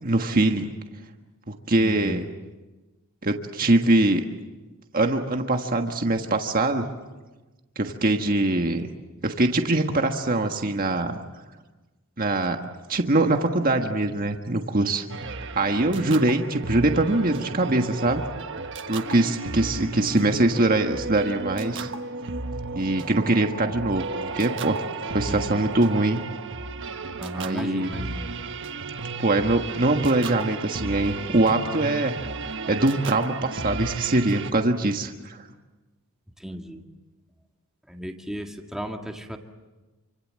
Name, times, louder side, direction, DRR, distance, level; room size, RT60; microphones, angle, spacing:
voice 1, 0.0-0.7 1.5-2.3 3.2-4.2 4.9-6.9 7.7-8.9 9.2-11.2 12.2-12.6 12.9-15.1 15.5-18.2 18.9-21.9 22.7-24.1 24.4-24.8 25.1-26.2 27.3-27.9 29.2-32.1 32.7-35.4, right 2 dB, 40° right, 4 dB, 1.5 m, -23 dB
voice 2, 1.8-2.2 15.9-16.1 25.3-25.4 27.2-28.2 36.4-36.8 37.9-39.4, equal, ahead, 3 dB, 1.8 m, -34 dB
sound 1, 15.1-34.5, right 3 dB, 60° right, 1.4 m, -34 dB
28.0 x 25.5 x 7.6 m, 1.2 s
head